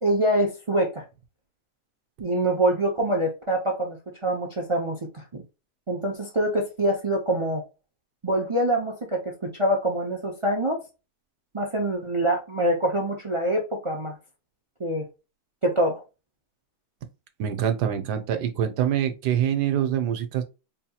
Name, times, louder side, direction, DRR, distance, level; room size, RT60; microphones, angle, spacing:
voice 1, 0.0-1.0 2.2-5.4 5.9-7.6 8.2-10.8 11.5-14.2 14.8-15.1 15.6-16.0, right 1 dB, 50° right, 0.3 m, -25 dB
voice 2, 17.4-20.4, right 9 dB, 80° right, 1.3 m, -25 dB
4.4 x 2.8 x 2.3 m
omnidirectional pair, 1.7 m